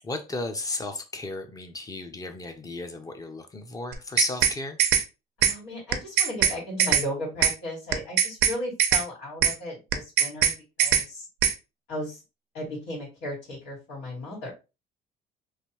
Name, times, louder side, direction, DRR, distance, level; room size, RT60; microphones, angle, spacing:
voice 1, 0.0-4.8, left 2 dB, 20° left, 0.6 m, -34 dB
sound 1, 3.9-4.5 4.8-5.0 5.4-5.5 5.9-6.5 6.8-7.0 7.4-7.5 7.9-8.5 8.8-9.0 9.4-9.5 9.9-10.5 10.8-11.0 11.4-11.5, right 9 dB, 80° right, 0.6 m, -21 dB
voice 2, 5.4-10.5 10.8-11.3 11.9-12.2 12.5-14.5, left 1 dB, 90° left, 2.1 m, -35 dB
3.3 x 2.6 x 2.9 m
cardioid pair, 110°, 17 cm